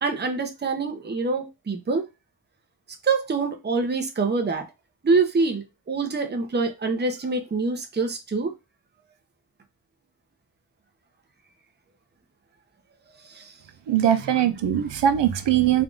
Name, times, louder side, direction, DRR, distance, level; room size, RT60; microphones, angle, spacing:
voice 1, 0.0-2.0 3.0-4.6 5.0-8.5 13.3-13.5, right 4 dB, 25° right, 4 dB, 0.6 m, -25 dB
voice 2, 13.9-15.8, right 10 dB, 80° right, 9 dB, 0.6 m, -21 dB
3.5 x 2.4 x 3.7 m, 0.24 s
wide cardioid pair, 130°, 42 cm